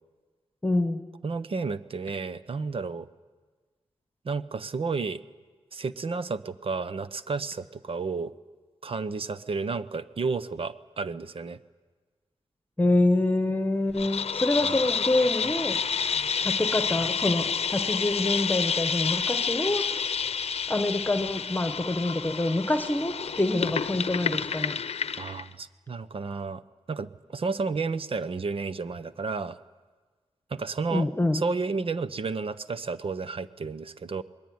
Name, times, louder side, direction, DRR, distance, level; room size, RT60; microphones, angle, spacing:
voice 1, 0.6-1.0 12.8-15.8 16.4-17.4 17.7-19.8 20.7-24.7 30.9-31.4, left 2 dB, 15° left, 7 dB, 1.4 m, -26 dB
voice 2, 1.2-3.1 4.2-5.2 5.7-8.3 8.8-11.6 14.6-14.8 25.2-26.6 26.9-29.6 30.5-31.1 31.3-34.2, right 4 dB, 55° right, 13 dB, 1.0 m, -31 dB
sound 1, 14.0-25.5, left 6 dB, 65° left, 0.7 m, -29 dB
26.5 x 21.0 x 9.6 m, 1.4 s
cardioid pair, 70°, 11 cm